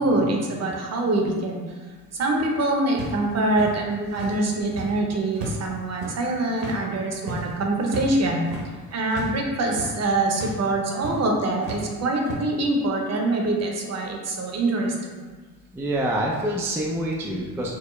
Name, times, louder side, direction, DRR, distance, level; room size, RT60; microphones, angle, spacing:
voice 1, 0.0-1.6 2.1-8.4 8.9-15.2, right 2 dB, 45° right, 1 dB, 0.7 m, -24 dB
sound 1, 3.0-5.0 5.3-9.4 9.6-10.0 10.3-10.6 11.0-11.2 11.6-12.3, right 2 dB, 70° right, 1.0 m, -35 dB
voice 2, 15.7-17.8, right 1 dB, 5° right, -2 dB, 0.3 m, -27 dB
4.6 x 2.0 x 3.0 m, 1.3 s
cardioid pair, 95°, 37 cm